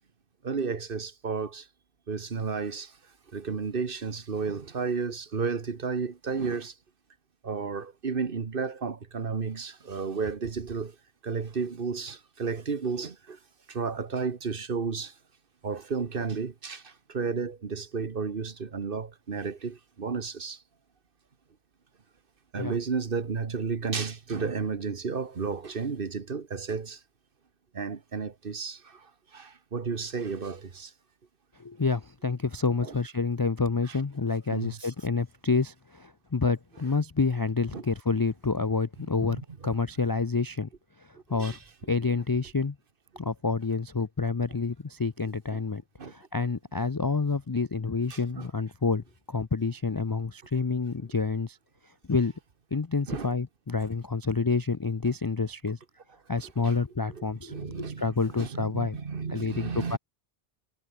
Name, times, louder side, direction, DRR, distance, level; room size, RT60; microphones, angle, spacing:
voice 1, 0.4-1.7 2.1-3.0 3.3-6.7 7.4-10.9 11.2-13.4 13.7-15.1 15.6-20.6 22.5-27.0 27.7-30.9 32.8-32.9 34.5-34.9 37.7-37.8 39.2-39.7 41.1-41.6 45.5-45.6 46.0-46.1 48.1-48.5 53.1-53.3 56.6-56.7 57.1-60.0, right 5 dB, 55° right, 1.5 m, -33 dB
voice 2, 31.6-40.7 41.0-41.6 41.9-42.8 43.2-51.6 52.1-52.3 52.7-55.8 56.3-59.0 59.3-60.0, left 4 dB, 30° left, 0.4 m, -28 dB
omnidirectional pair, 1.1 m